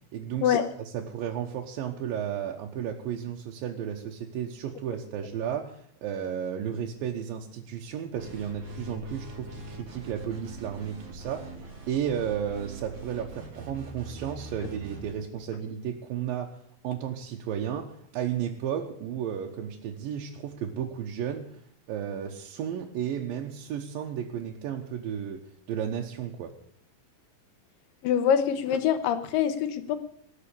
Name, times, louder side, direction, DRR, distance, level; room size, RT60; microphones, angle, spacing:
voice 1, 0.1-16.5 16.8-21.5 21.9-26.5, right 9 dB, 85° right, 0 dB, 2.9 m, -33 dB
sound 1, 8.1-15.2, right 2 dB, 35° right, 4.3 m, -42 dB
voice 2, 28.0-30.0, left 8 dB, 80° left, 10 dB, 2.9 m, -24 dB
19.0 x 6.9 x 8.5 m, 0.66 s
omnidirectional pair, 4.0 m